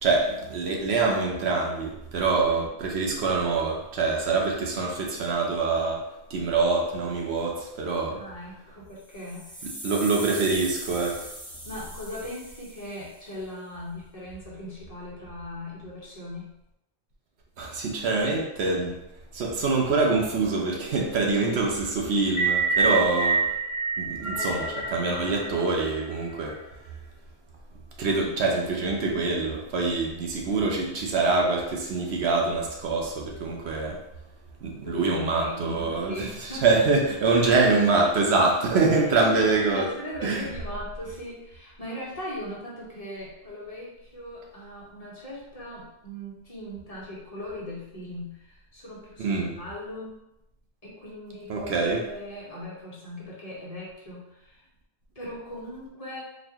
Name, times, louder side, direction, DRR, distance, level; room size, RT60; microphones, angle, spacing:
voice 1, 0.0-8.2 9.8-11.3 17.6-18.9 19.3-23.4 24.0-26.6 28.0-34.0 34.6-39.9 40.2-40.5 49.2-49.5 51.5-52.0, right 3 dB, 75° right, 0 dB, 0.9 m, -25 dB
voice 2, 8.1-9.7 11.6-16.6 21.4-21.6 22.8-23.1 34.8-36.6 37.2-37.5 39.1-50.2 50.8-51.7 52.0-54.6 55.1-56.2, left 1 dB, 35° left, -7 dB, 1.0 m, -39 dB
sound 1, 9.0-13.2, equal, 5° left, 0.7 m, -40 dB
sound 2, 22.2-26.6, right 4 dB, 75° left, 1.0 m, -27 dB
4.0 x 2.5 x 2.8 m, 0.88 s
omnidirectional pair, 1.1 m